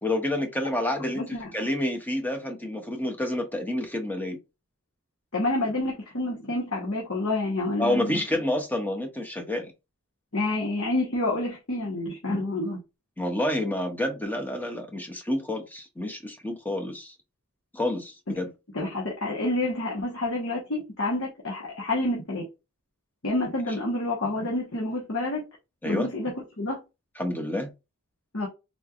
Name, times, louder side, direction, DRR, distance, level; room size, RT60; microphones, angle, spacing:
voice 1, 0.0-4.4 7.8-9.7 13.2-17.1 17.7-18.5 25.8-26.1 27.2-27.7, left 1 dB, 10° left, 0.7 m, -29 dB
voice 2, 1.1-1.5 5.3-8.2 10.3-12.8 18.7-22.4 23.2-25.4 25.8-26.8 28.3-28.5, left 2 dB, 60° left, 1.2 m, -28 dB
4.1 x 3.2 x 2.4 m
head